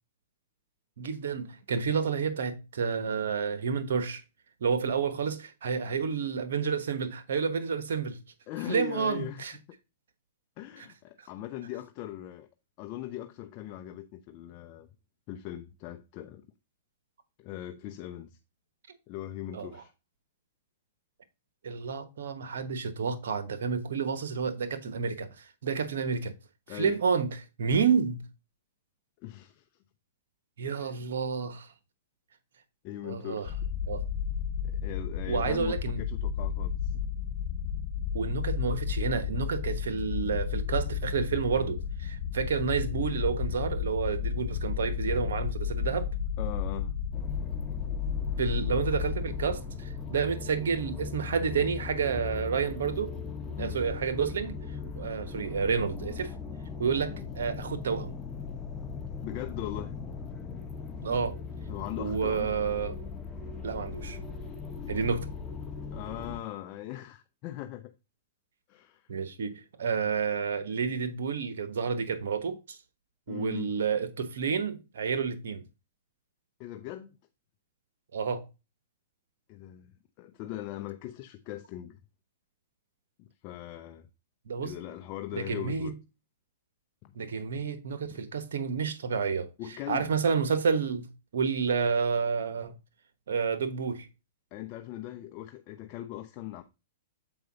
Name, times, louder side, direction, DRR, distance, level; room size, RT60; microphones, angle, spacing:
voice 1, 1.0-4.2 4.6-8.2 8.7-9.5 10.8-10.9 11.2-11.3 19.5-19.8 21.6-26.3 26.7-28.2 30.6-31.7 33.0-33.5 33.9-34.0 35.3-36.0 36.9-37.0 38.1-46.1 48.4-53.1 53.6-56.3 56.8-58.1 61.0-61.4 62.0-63.0 63.6-64.2 64.9-65.3 69.1-72.8 73.3-75.6 78.1-78.5 84.5-84.7 85.3-85.9 87.1-89.5 89.9-92.7 93.3-94.1, right 6 dB, 75° right, 1.2 m, -30 dB
voice 2, 8.5-9.4 10.6-12.5 12.8-14.9 15.3-16.5 17.4-18.4 19.1-19.9 26.7-27.0 29.2-29.7 30.6-30.9 32.8-33.6 34.6-36.9 46.4-47.0 53.6-53.8 57.1-57.3 59.2-60.0 61.7-62.5 65.9-67.9 68.7-69.1 73.3-73.8 76.6-77.2 79.5-82.0 83.2-84.1 84.6-85.9 87.0-87.1 88.1-88.2 89.6-90.1 94.5-96.6, left 13 dB, 40° left, 0.7 m, -40 dB
sound 1, 33.5-49.6, left 7 dB, 55° left, 1.4 m, -32 dB
sound 2, 47.1-66.4, left 5 dB, 10° left, 1.5 m, -39 dB
8.0 x 4.6 x 4.0 m
hypercardioid pair, 135°, 0 cm